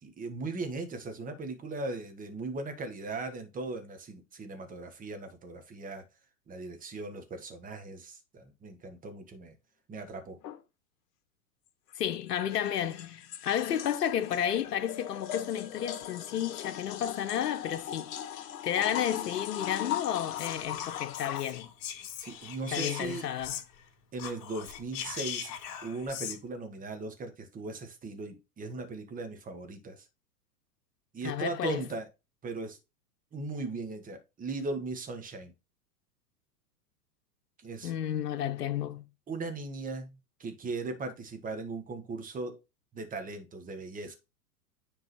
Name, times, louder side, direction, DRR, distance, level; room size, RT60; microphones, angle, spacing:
voice 1, 0.0-6.0 6.5-9.6 9.9-10.4 22.2-23.3 24.1-25.5 25.8-30.1 31.1-32.1 32.4-32.8 33.3-35.5 37.6-37.9 39.3-42.6 42.9-44.1, right 3 dB, 15° right, 1.3 m, -38 dB
sound 1, 10.4-10.6 12.3-21.5, left 10 dB, 55° left, 1.4 m, -39 dB
voice 2, 12.0-18.1 18.6-21.7 22.7-23.6 31.2-31.8 37.8-39.0, left 10 dB, 80° left, 0.9 m, -32 dB
Whispering, 20.3-23.9 24.1-26.4, left 9 dB, 40° left, 2.7 m, -40 dB
9.8 x 3.8 x 3.1 m
hypercardioid pair, 115°, 48 cm